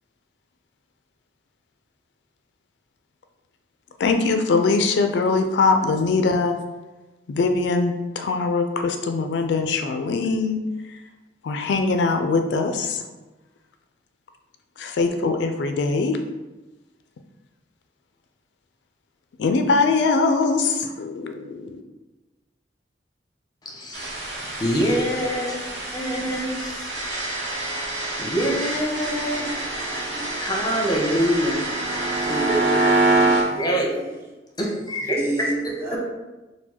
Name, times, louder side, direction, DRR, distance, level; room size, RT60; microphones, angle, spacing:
voice 1, 4.0-6.6 7.3-10.6 11.4-13.0 14.8-16.2 19.4-21.7, left 4 dB, 70° left, 6 dB, 0.3 m, -22 dB
voice 2, 23.6-26.6 28.2-31.6 32.2-32.9 33.6-34.0 34.6-35.2, equal, 20° left, -1 dB, 0.7 m, -25 dB
sound 1, 23.9-33.4, right 2 dB, 85° right, 1.0 m, -26 dB
voice 3, 32.2-32.6 33.1-34.2 35.1-36.0, right 2 dB, 15° right, -2 dB, 0.7 m, -32 dB
4.4 x 2.2 x 4.2 m, 1.1 s
head